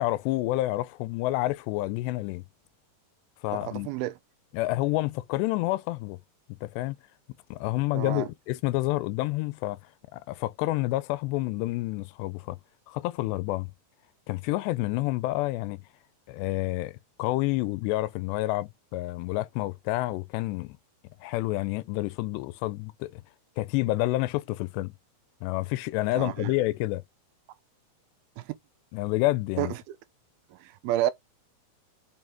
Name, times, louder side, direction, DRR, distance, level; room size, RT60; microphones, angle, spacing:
voice 1, 0.0-2.4 3.4-3.9 4.5-6.2 6.6-7.0 7.5-9.8 10.1-12.6 12.9-13.7 14.3-15.8 16.3-20.8 21.2-23.2 23.6-24.9 25.4-27.0 28.9-29.7, left 18 dB, 85° left, 2.8 m, -29 dB
voice 2, 3.5-4.2 7.9-8.3 26.1-26.5 28.4-28.6 29.6-29.8 30.5-31.1, right 14 dB, 80° right, 2.3 m, -30 dB
7.6 x 5.5 x 3.6 m
omnidirectional pair, 4.9 m